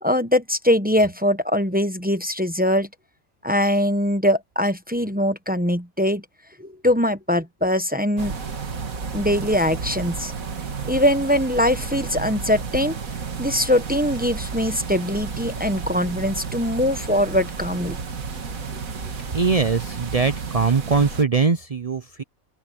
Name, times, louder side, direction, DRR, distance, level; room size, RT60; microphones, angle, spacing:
voice 1, 0.0-2.9 3.4-6.2 6.6-8.3 9.1-10.3 10.8-13.0 13.4-18.0 18.7-18.8, left 1 dB, 10° right, 0.8 m, -22 dB
sound 1, 8.2-21.2, right 5 dB, 70° right, 2.2 m, -32 dB
voice 2, 19.3-22.2, right 4 dB, 45° right, 0.4 m, -21 dB
open air
omnidirectional pair, 1.5 m